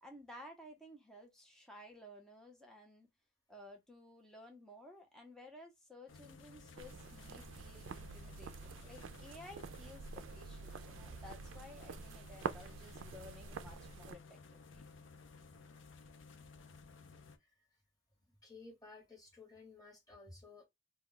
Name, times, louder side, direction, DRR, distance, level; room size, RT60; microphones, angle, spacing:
voice 1, 0.0-3.1 3.5-14.9, left 1 dB, 5° left, 0.7 m, -55 dB
sound 1, 6.1-17.4, left 4 dB, 70° left, 0.5 m, -57 dB
sound 2, 6.8-14.1, right 5 dB, 75° right, 0.4 m, -47 dB
voice 2, 18.2-20.6, left 3 dB, 20° left, 1.2 m, -55 dB
2.3 x 2.2 x 3.7 m
head